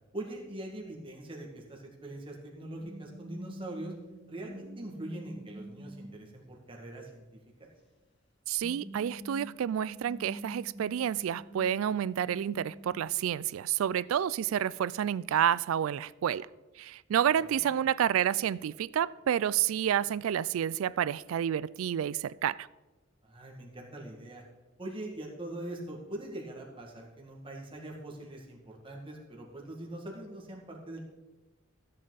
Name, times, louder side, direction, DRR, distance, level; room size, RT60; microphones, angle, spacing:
voice 1, 0.1-3.9 4.3-7.2 7.6-7.7 23.2-24.4 24.8-31.0, right 1 dB, 25° right, -1 dB, 1.9 m, -42 dB
sound 1, 2.8-6.8 8.5-13.0, right 1 dB, 55° left, 3.0 m, -47 dB
voice 2, 8.5-16.5 16.8-22.7, right 9 dB, 85° right, 20 dB, 0.3 m, -29 dB
14.5 x 7.7 x 4.0 m, 1.1 s
head